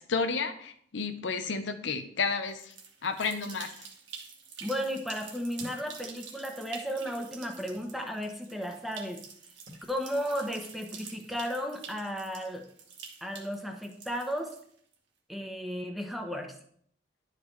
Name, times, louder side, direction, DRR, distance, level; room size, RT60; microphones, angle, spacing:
voice 1, 0.0-2.7 3.0-3.7, left 4 dB, 75° left, 9 dB, 0.7 m, -31 dB
sound 1, 2.5-14.9, right 6 dB, 80° right, 1.4 m, -48 dB
voice 2, 4.6-9.2 9.9-12.7 13.2-14.5 15.3-16.5, equal, ahead, 3 dB, 0.7 m, -34 dB
sound 2, 5.6-5.9 6.8-8.0 9.7-9.9, equal, 50° right, 1.6 m, -50 dB
11.0 x 5.1 x 3.2 m, 0.64 s
head